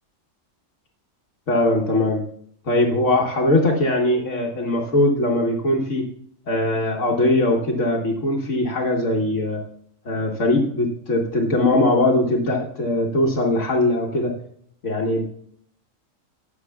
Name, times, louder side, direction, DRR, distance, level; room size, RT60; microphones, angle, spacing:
voice 1, 1.5-2.2 2.7-6.1 6.5-9.6 10.1-14.3 14.8-15.3, left 1 dB, 65° left, 0 dB, 1.6 m, -21 dB
14.5 x 9.2 x 2.3 m, 0.65 s
omnidirectional pair, 1.4 m